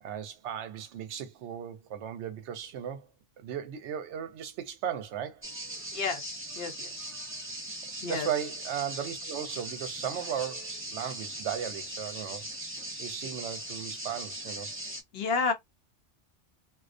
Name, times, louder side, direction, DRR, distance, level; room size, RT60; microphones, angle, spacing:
voice 1, 0.0-3.1 3.4-5.4 8.0-12.5 13.0-14.7, right 9 dB, 75° right, 0.8 m, -36 dB
sound 1, 5.4-15.0, right 1 dB, 20° right, 0.3 m, -39 dB
voice 2, 5.9-7.0 8.0-8.3 13.0-13.3 15.1-15.5, left 4 dB, 60° left, 0.8 m, -32 dB
2.4 x 2.1 x 2.4 m
omnidirectional pair, 1.2 m